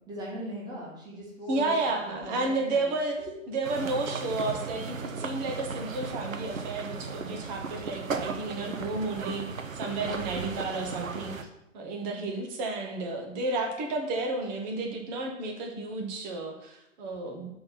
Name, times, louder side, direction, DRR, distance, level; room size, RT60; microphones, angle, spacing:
voice 1, 0.1-3.0, equal, 10° right, -5 dB, 1.8 m, -40 dB
voice 2, 1.5-11.4 11.7-17.5, right 2 dB, 35° right, 2 dB, 1.4 m, -32 dB
sound 1, 3.6-11.4, right 4 dB, 80° right, 0.8 m, -36 dB
5.6 x 3.9 x 5.9 m, 0.84 s
figure-of-eight pair, 115°, 39 cm